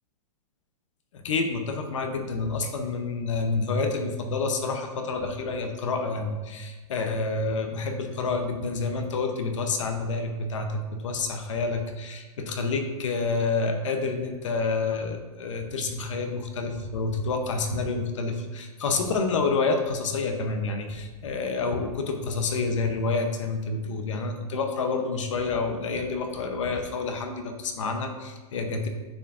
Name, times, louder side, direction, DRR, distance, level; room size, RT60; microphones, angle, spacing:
voice 1, 1.1-28.9, left 3 dB, 55° left, 5 dB, 0.8 m, -28 dB
8.9 x 4.7 x 2.5 m, 1.2 s
hypercardioid pair, 180°, 20 cm